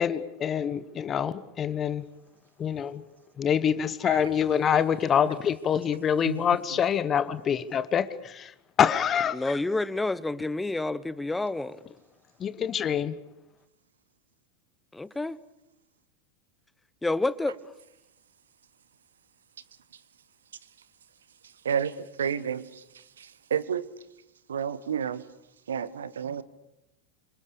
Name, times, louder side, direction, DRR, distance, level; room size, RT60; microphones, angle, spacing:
voice 1, 0.0-2.0 2.6-3.0 3.4-8.5 8.8-9.4 12.4-13.1, left 8 dB, 30° left, 1.3 m, -25 dB
voice 2, 9.3-11.8 14.9-15.4 17.0-17.6, left 2 dB, 10° left, 1.1 m, -29 dB
voice 3, 22.2-22.6 23.5-23.8 24.5-25.2 25.7-26.4, right 8 dB, 70° right, 1.3 m, -29 dB
27.5 x 26.5 x 6.8 m
figure-of-eight pair, 85°, 0 cm